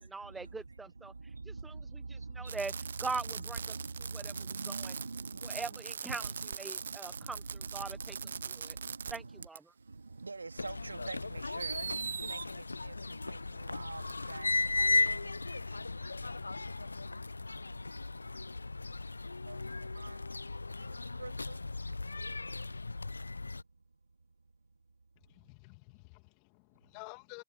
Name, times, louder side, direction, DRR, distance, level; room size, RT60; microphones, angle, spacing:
voice 1, 0.1-1.1 1.5-1.7 2.1-2.7 3.0-3.6 4.1-4.2 5.5-6.2 6.6-7.4 7.7-8.1 8.7-8.8 9.1-9.6, right 4 dB, 5° right, 1.2 m, -40 dB
voice 2, 2.0-5.8 6.1-6.5 6.8-7.2 7.7-9.4 10.2-11.8 12.3-12.9 13.3-13.4 13.6-14.0 14.3-14.5 14.8-15.2 19.5-19.6 20.0-20.2 21.2-21.3, right 3 dB, 80° right, 3.1 m, -44 dB
Fireworks, 2.5-9.2 9.4-9.6 10.7-10.8 11.6-12.5 14.1-14.2, right 6 dB, 65° right, 0.7 m, -41 dB
sound 1, 10.6-23.6, left 3 dB, 85° left, 0.7 m, -36 dB
voice 3, 25.3-27.4, left 32 dB, 30° left, 2.5 m, -51 dB
figure-of-eight pair, 135°, 0 cm